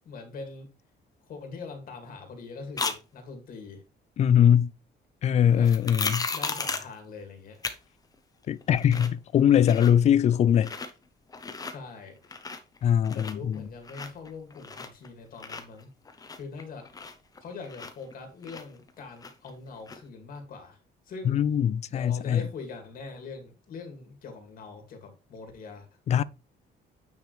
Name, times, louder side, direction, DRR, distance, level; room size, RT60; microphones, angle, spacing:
voice 1, 0.1-0.7 1.3-3.8 5.5-5.7 6.3-7.6 11.7-12.2 13.1-15.9 16.3-16.9 17.4-20.8 21.1-21.4 21.9-25.9 26.1-26.2, left 4 dB, 55° left, 2.2 m, -42 dB
sound 1, 2.8-3.0 5.6-6.9 7.6-7.8 8.1-8.2 8.6-9.2 9.5-10.1 10.5-10.9 11.3-11.7 12.2-12.8 13.0-15.1 15.4-18.1 18.4-19.5 19.9-20.0, left 4 dB, 20° left, 0.9 m, -35 dB
voice 2, 4.2-4.7 5.2-6.3 8.5-10.7 12.8-13.7 21.2-22.5 26.1-26.2, left 9 dB, 40° left, 0.4 m, -22 dB
9.3 x 5.2 x 3.2 m
cardioid pair, 175°, 18 cm